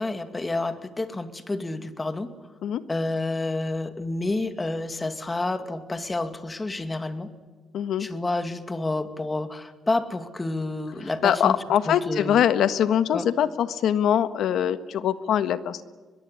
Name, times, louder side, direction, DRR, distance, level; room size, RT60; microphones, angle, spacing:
voice 1, 0.0-2.3 2.9-7.3 8.0-11.6 11.9-12.4 13.1-13.3, left 2 dB, 20° left, 9 dB, 2.4 m, -29 dB
voice 2, 7.7-8.1 11.2-15.8, left 9 dB, 75° left, 12 dB, 1.4 m, -23 dB
22.5 x 22.0 x 10.0 m, 1.4 s
cardioid pair, 90°, 0 cm